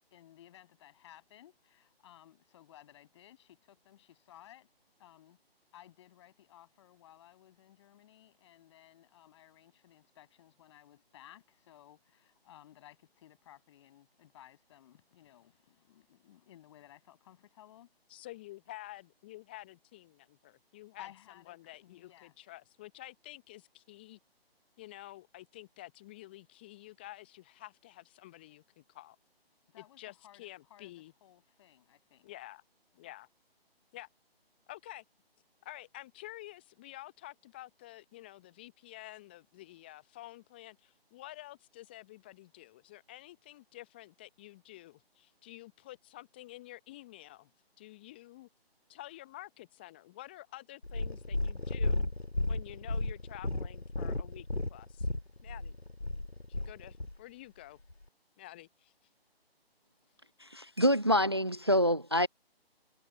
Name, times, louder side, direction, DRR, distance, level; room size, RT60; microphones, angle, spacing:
voice 1, 0.1-4.7 5.0-5.4 5.7-17.9 21.0-22.3 29.7-32.3, left 12 dB, 30° left, 6.4 m, -58 dB
voice 2, 18.1-21.1 21.5-24.2 24.8-29.2 29.8-31.1 32.2-32.6 33.0-33.3 33.9-34.1 34.7-35.0 35.6-47.5 47.8-48.5 48.9-52.0 52.5-55.1 55.4-55.8 56.5-57.8 58.4-58.9, left 16 dB, 10° left, 0.8 m, -50 dB
Purr, 50.8-57.2 57.9-58.0, left 2 dB, 85° left, 2.7 m, -34 dB
voice 3, 60.5-62.3, equal, 25° right, 0.4 m, -26 dB
figure-of-eight pair, 145°, 31 cm